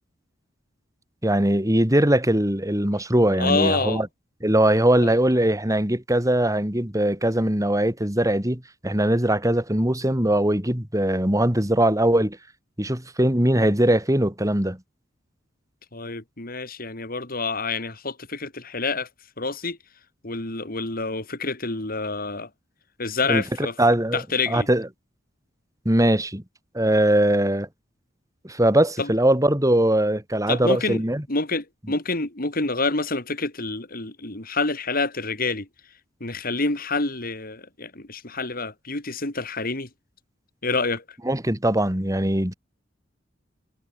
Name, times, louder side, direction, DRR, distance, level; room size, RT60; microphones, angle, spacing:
voice 1, 1.2-4.1 4.4-12.4 12.8-14.8 23.3-23.4 23.8-24.2 24.5-24.9 25.9-26.4 26.7-27.7 28.4-31.2 41.3-42.5, right 1 dB, 15° right, 3.9 m, -21 dB
voice 2, 3.4-4.0 5.0-5.2 15.9-19.1 19.4-19.8 20.2-22.5 23.0-23.8 24.1-24.7 29.0-29.1 30.5-31.0 31.3-35.7 36.2-39.9 40.6-41.0, left 3 dB, 50° left, 3.5 m, -27 dB
head